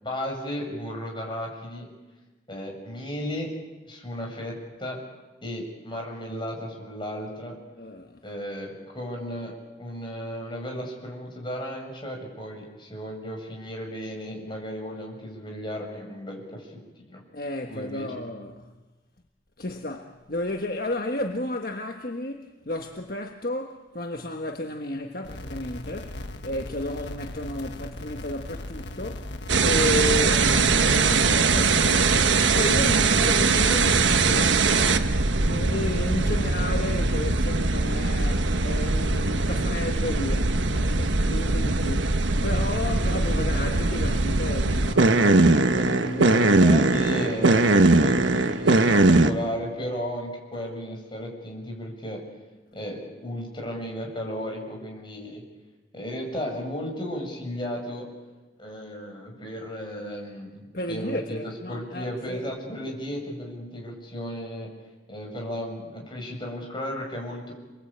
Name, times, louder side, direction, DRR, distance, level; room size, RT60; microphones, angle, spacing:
voice 1, 0.0-1.9 2.5-3.5 3.9-5.0 5.4-7.6 8.2-16.7 17.1-17.2 17.7-18.1 46.2-52.2 52.7-55.4 55.9-58.1 58.6-64.7 65.1-67.5, equal, 25° left, 7.0 m, -34 dB
voice 2, 7.8-8.2 17.3-18.7 19.6-29.3 29.6-35.2 35.5-42.2 42.4-47.2 60.7-62.4, left 1 dB, 50° left, 1.4 m, -33 dB
sound 1, 25.2-30.7, left 1 dB, 70° left, 1.5 m, -38 dB
sound 2, 29.5-49.3, right 3 dB, 80° right, 1.3 m, -21 dB
28.5 x 22.0 x 8.8 m
head